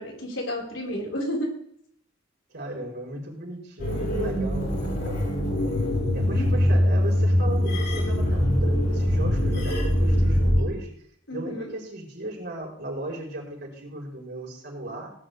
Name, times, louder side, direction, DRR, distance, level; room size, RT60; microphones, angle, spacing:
voice 1, 0.0-1.5 6.3-6.8 11.3-11.7, equal, 85° left, -2 dB, 5.0 m, -32 dB
voice 2, 2.5-5.8 6.1-10.9 11.3-15.1, right 1 dB, 60° right, -1 dB, 4.7 m, -36 dB
sound 1, 3.8-10.6, equal, 60° left, 5.9 m, -23 dB
18.0 x 10.5 x 3.5 m, 0.63 s
head